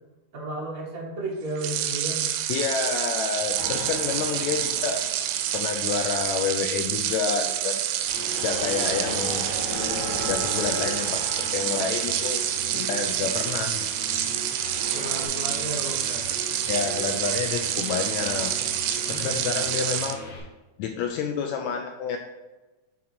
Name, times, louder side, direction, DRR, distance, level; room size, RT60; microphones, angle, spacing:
voice 1, 0.3-2.3 14.8-16.2 19.0-19.4, right 1 dB, 40° right, -3 dB, 1.3 m, -34 dB
sound 1, 1.6-20.2, right 11 dB, 90° right, 2.1 m, -28 dB
voice 2, 2.5-5.0 5.5-7.8 8.4-9.4 10.3-11.2 11.5-12.4 12.7-13.9 16.7-18.5 19.1-20.2 20.8-22.2, left 6 dB, 80° left, 3 dB, 1.7 m, -29 dB
sound 2, 3.6-6.1 6.6-13.1 14.2-15.3, equal, 20° right, 0.8 m, -37 dB
sound 3, 8.1-20.4, left 2 dB, 60° left, 2.3 m, -40 dB
7.4 x 4.0 x 4.2 m, 1.1 s
omnidirectional pair, 3.5 m